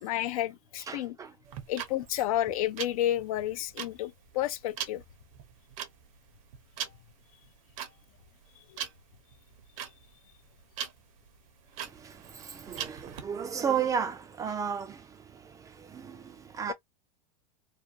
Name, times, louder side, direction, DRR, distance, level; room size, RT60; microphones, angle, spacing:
voice 1, 0.0-1.2 1.7-5.0 8.7-8.8, left 13 dB, 65° left, 0.4 m, -31 dB
voice 2, 0.9-1.3 11.8-16.7, right 7 dB, 15° right, 0.4 m, -34 dB
sound 1, 1.5-13.2, right 9 dB, 60° right, 0.7 m, -41 dB
2.5 x 2.1 x 2.5 m
hypercardioid pair, 115°, 20 cm